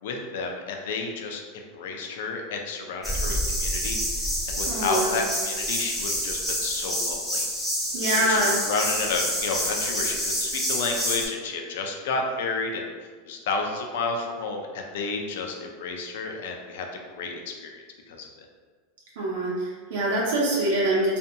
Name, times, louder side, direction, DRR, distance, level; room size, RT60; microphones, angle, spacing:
voice 1, 0.0-7.5 8.1-16.9 17.1-18.3, left 4 dB, 70° left, 2 dB, 0.4 m, -31 dB
sound 1, 3.0-11.3, equal, ahead, 0.6 m, -28 dB
voice 2, 4.7-5.1 7.9-8.6 19.2-21.2, right 1 dB, 70° right, -5 dB, 0.6 m, -24 dB
2.5 x 2.2 x 2.7 m, 1.5 s
supercardioid pair, 165°, 0 cm